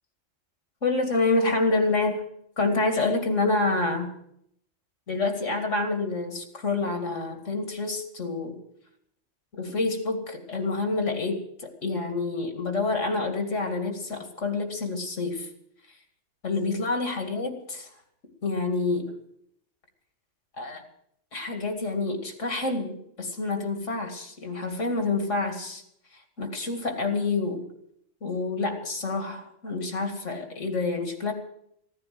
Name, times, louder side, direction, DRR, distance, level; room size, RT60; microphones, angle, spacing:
voice 1, 0.8-2.2 2.6-4.1 5.1-8.6 9.6-15.5 16.4-17.9 18.4-19.1 20.6-20.8 21.3-25.8 26.1-27.6 28.2-31.3, left 3 dB, 85° left, 5 dB, 2.6 m, -28 dB
15.5 x 9.7 x 7.7 m, 0.73 s
omnidirectional pair, 1.2 m